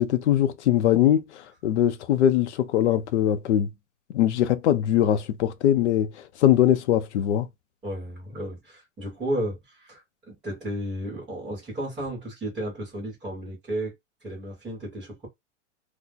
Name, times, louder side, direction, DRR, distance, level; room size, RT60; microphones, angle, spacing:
voice 1, 0.0-3.7 4.1-7.5, left 11 dB, 65° left, 0.6 m, -22 dB
voice 2, 7.8-13.9 14.2-15.3, right 1 dB, ahead, 0.3 m, -33 dB
2.8 x 2.1 x 3.9 m
supercardioid pair, 175°, 37 cm